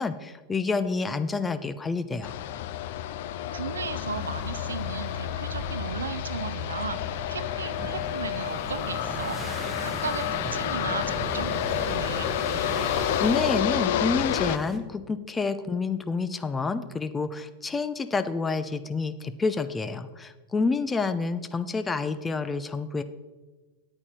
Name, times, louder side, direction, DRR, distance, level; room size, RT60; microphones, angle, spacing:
voice 1, 0.0-2.3 12.7-23.0, left 4 dB, 15° left, 12 dB, 0.6 m, -28 dB
sound 1, 2.2-14.6, left 11 dB, 60° left, 0.5 m, -30 dB
voice 2, 3.5-7.0 7.3-9.4 9.8-10.2 10.5-12.3, right 5 dB, 80° right, 13 dB, 0.6 m, -35 dB
sound 2, 4.0-14.8, right 3 dB, 20° right, 1.1 m, -39 dB
8.8 x 8.8 x 4.4 m, 1.2 s
figure-of-eight pair, 95°, 0 cm